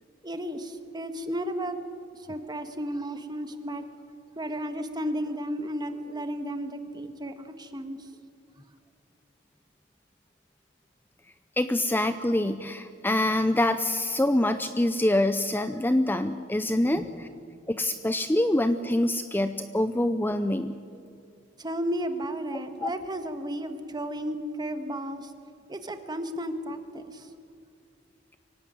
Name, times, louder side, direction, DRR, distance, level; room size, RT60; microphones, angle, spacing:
voice 1, 0.2-1.8 2.1-3.8 4.3-8.1 16.9-17.1 21.6-25.3 25.7-27.3, equal, 20° right, 7 dB, 1.6 m, -33 dB
voice 2, 11.6-17.3 17.7-20.7 22.8-22.9, left 1 dB, 10° left, 10 dB, 0.6 m, -25 dB
24.0 x 17.0 x 9.6 m, 2.4 s
head